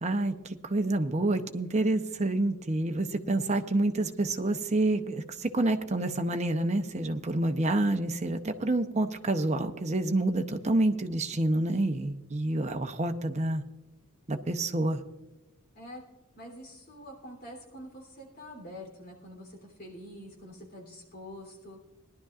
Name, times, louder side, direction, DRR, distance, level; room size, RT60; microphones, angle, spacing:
voice 1, 0.0-13.6 14.3-15.0, right 2 dB, 30° right, 6 dB, 0.8 m, -28 dB
voice 2, 16.4-21.8, equal, 45° left, 1 dB, 3.2 m, -46 dB
20.5 x 11.5 x 2.4 m, 1.0 s
head